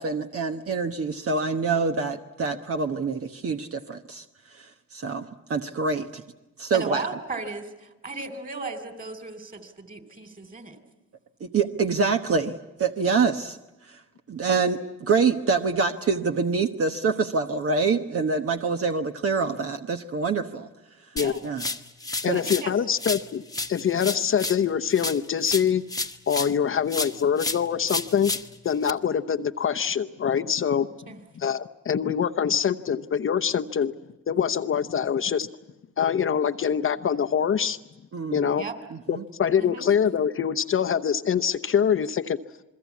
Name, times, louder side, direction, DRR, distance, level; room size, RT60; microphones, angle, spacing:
voice 1, 0.0-4.2 4.6-6.2 6.6-7.1 11.4-12.5 12.8-13.6 13.9-14.0 14.3-20.7 21.4-21.7 22.2-22.4 38.1-38.4 38.9-39.2, right 4 dB, 50° right, 6 dB, 1.2 m, -26 dB
voice 2, 6.7-10.8 21.2-21.4 22.3-22.7 31.1-31.2 38.6-38.8 39.6-39.9, right 3 dB, 30° right, 9 dB, 3.5 m, -36 dB
sound 1, 21.2-22.7 23.0-26.6 26.9-28.9, left 2 dB, 10° left, 1.3 m, -32 dB
voice 3, 22.2-23.4 23.7-25.8 26.3-28.3 28.6-30.9 31.4-33.9 34.3-35.5 36.0-37.8 38.3-38.6 39.1-42.4, left 8 dB, 45° left, 8 dB, 0.9 m, -24 dB
28.0 x 22.0 x 8.4 m, 0.99 s
cardioid pair, 90°, 30 cm